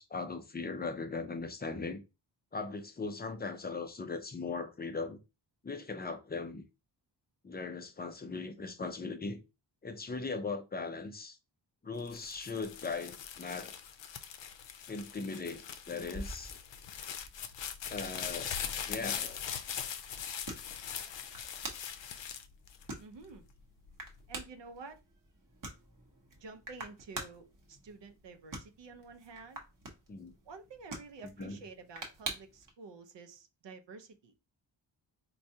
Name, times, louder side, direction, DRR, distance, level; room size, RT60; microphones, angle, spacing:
voice 1, 0.0-2.0 2.5-5.2 5.6-6.6 7.4-9.4 9.8-11.4 11.8-13.7 14.9-16.6 17.9-18.5 18.9-19.4 30.1-30.3 31.4-31.6, left 4 dB, 25° left, 0.3 m, -39 dB
sound 1, 12.0-23.3 23.9-24.4, left 8 dB, 70° left, 0.5 m, -41 dB
sound 2, 16.0-32.7, right 2 dB, 45° right, 0.9 m, -48 dB
voice 2, 23.0-23.5 24.3-25.0 26.4-29.6 30.4-34.4, right 4 dB, 70° right, 0.6 m, -50 dB
4.4 x 2.3 x 2.7 m
wide cardioid pair, 170°, 45 cm